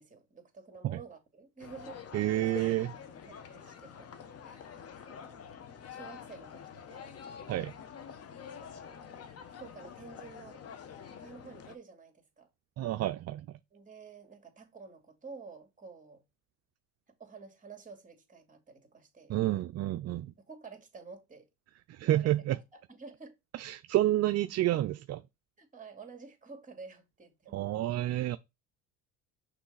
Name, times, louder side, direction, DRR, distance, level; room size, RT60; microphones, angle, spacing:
voice 1, 0.0-2.0 2.3-2.5 3.2-4.2 4.4-5.4 5.9-7.2 8.4-9.2 9.6-10.6 11.1-12.5 13.7-16.2 17.1-19.4 20.5-21.5 22.0-23.4 25.6-27.8, right 4 dB, 20° right, 2.3 m, -51 dB
sound 1, 1.6-11.8, left 7 dB, 40° left, 1.0 m, -47 dB
voice 2, 2.1-2.9 7.5-7.7 12.8-13.5 19.3-20.3 21.9-22.6 23.5-25.2 27.5-28.4, right 14 dB, 45° right, 0.4 m, -29 dB
6.2 x 3.1 x 5.6 m
supercardioid pair, 90°, 37 cm